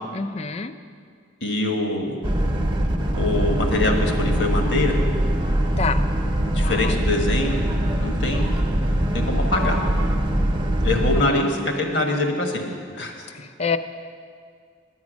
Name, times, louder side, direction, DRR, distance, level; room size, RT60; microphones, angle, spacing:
voice 1, 0.1-0.7 5.8-6.0 6.5-7.0 11.2-11.5 13.3-13.8, left 5 dB, 35° left, 11 dB, 0.4 m, -28 dB
voice 2, 1.4-2.2 3.1-5.0 6.5-7.6 8.0-8.5 9.1-9.8 10.8-12.6 12.9-13.1, left 2 dB, 60° left, 2 dB, 1.3 m, -24 dB
Boat Water vehicle, 2.2-11.2, right 1 dB, 25° right, 0.7 m, -22 dB
9.5 x 8.8 x 6.2 m, 2.1 s
head